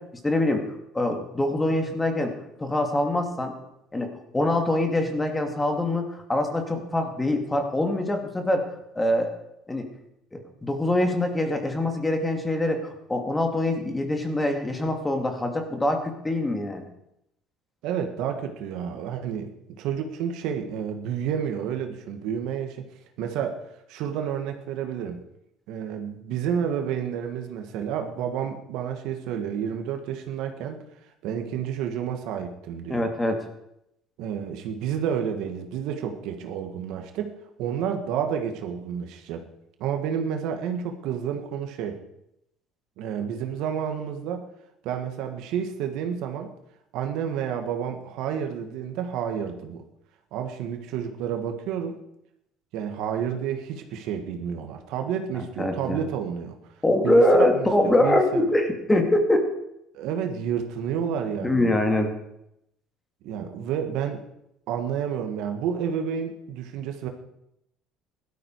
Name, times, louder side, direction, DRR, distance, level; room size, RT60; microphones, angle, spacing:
voice 1, 0.2-0.6 0.9-2.3 2.6-3.5 3.9-8.7 9.0-9.3 9.7-9.9 10.3-16.8 32.9-33.4 55.6-56.0 56.8-59.5 61.4-62.1, left 1 dB, 15° left, 4 dB, 2.6 m, -24 dB
voice 2, 17.8-22.9 23.2-25.2 25.7-30.8 31.2-33.0 34.2-37.3 37.6-39.4 39.8-42.0 43.0-44.5 44.8-46.5 46.9-49.8 50.3-52.0 52.7-56.6 57.0-58.5 59.9-61.7 63.2-64.2 64.7-67.1, right 8 dB, 75° right, 5 dB, 1.9 m, -30 dB
16.0 x 12.5 x 4.9 m, 0.80 s
supercardioid pair, 105°, 0 cm